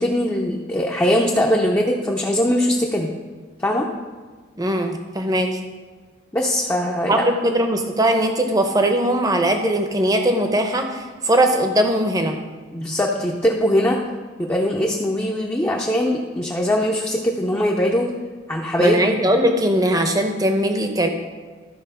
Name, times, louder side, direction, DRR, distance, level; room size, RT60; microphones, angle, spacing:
voice 1, 0.0-3.1 3.6-3.9 6.3-7.2 12.7-14.0 14.4-18.1 18.5-19.4, equal, 10° left, -2 dB, 0.6 m, -21 dB
voice 2, 4.6-5.6 7.1-12.4 18.8-21.1, right 1 dB, 20° right, 5 dB, 0.8 m, -20 dB
13.0 x 4.4 x 5.6 m, 1.5 s
head